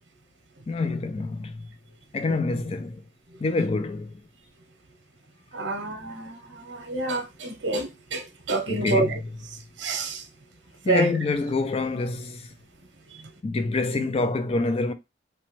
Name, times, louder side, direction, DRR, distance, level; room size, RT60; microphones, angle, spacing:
voice 1, 0.7-1.6 2.1-3.0 3.4-4.2 8.7-9.1 10.8-12.5 13.4-14.9, left 3 dB, 30° left, 0.3 m, -26 dB
voice 2, 5.5-9.1 9.8-10.2 10.9-11.2, right 2 dB, 80° right, 0.7 m, -28 dB
2.9 x 2.2 x 3.0 m
head